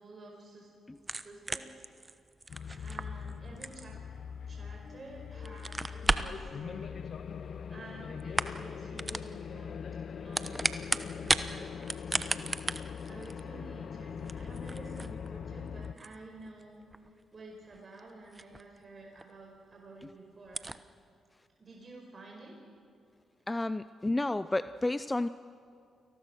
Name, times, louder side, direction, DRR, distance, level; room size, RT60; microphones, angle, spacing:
voice 1, 0.0-0.7 1.2-1.8 2.8-4.0 4.5-7.1 7.7-9.7 10.2-12.8 13.0-16.8 17.3-20.6 21.6-22.5, right 2 dB, 40° right, -1 dB, 4.9 m, -50 dB
sound 1, 1.0-5.0 5.4-6.4 7.5-7.9 8.2-8.7 9.0-9.3 10.1-11.5 11.8-18.8 19.2-19.3 19.7-19.8 20.0-20.1 20.5-20.8, right 2 dB, 25° right, 1.0 m, -35 dB
sound 2, 2.5-16.0, left 6 dB, 60° left, 0.7 m, -41 dB
voice 2, 23.5-25.3, left 2 dB, 20° left, 14 dB, 0.6 m, -31 dB
29.0 x 19.5 x 6.3 m, 2.3 s
hypercardioid pair, 40°, 0 cm